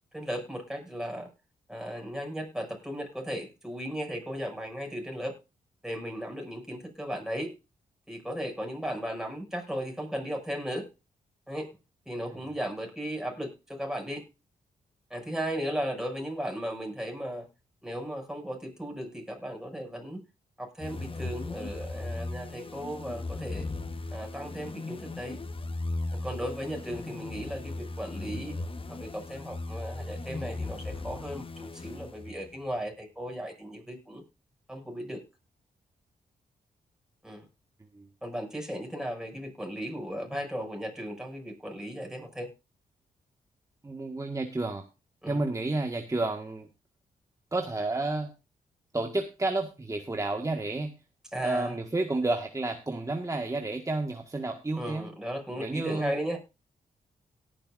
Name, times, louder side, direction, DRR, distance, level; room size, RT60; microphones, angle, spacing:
voice 1, 0.1-1.3 1.7-5.3 5.8-7.5 8.1-10.9 11.5-11.7 12.0-14.2 15.1-17.5 17.8-20.2 20.6-23.7 24.1-25.4 26.1-28.6 28.9-34.2 34.7-35.2 37.2-37.4 38.2-42.5 45.2-45.4 51.3-51.8 54.8-56.4, equal, 5° right, 1 dB, 6.8 m, -36 dB
sound 1, 20.8-32.6, left 2 dB, 35° left, 1.2 m, -37 dB
voice 2, 43.8-44.8 45.3-46.7 47.5-48.3 48.9-50.9 51.4-55.1 55.6-56.1, right 2 dB, 20° right, 3 dB, 1.8 m, -31 dB
18.0 x 10.5 x 2.6 m, 0.29 s
cardioid pair, 65°, 15 cm